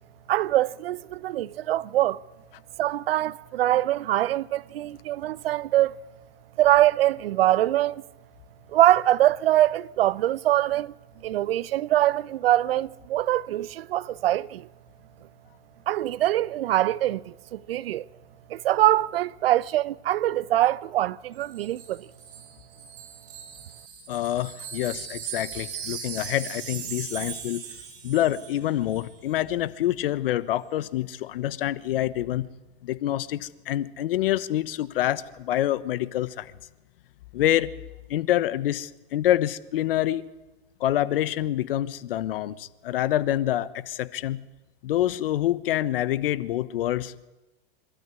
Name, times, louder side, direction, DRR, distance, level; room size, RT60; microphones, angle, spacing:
voice 1, 0.3-2.2 2.8-6.0 6.6-8.0 8.7-14.7 15.9-18.1 18.5-22.1, right 14 dB, 80° right, 0.7 m, -23 dB
Wind chime, 21.4-28.6 28.9-29.1, right 8 dB, 65° right, 7.2 m, -39 dB
voice 2, 24.1-27.6 28.0-32.5 32.8-36.5 37.3-37.7 38.1-40.2 40.8-44.4 44.8-47.3, left 13 dB, 70° left, 1.1 m, -26 dB
25.5 x 13.0 x 9.7 m
supercardioid pair, 150°, 29 cm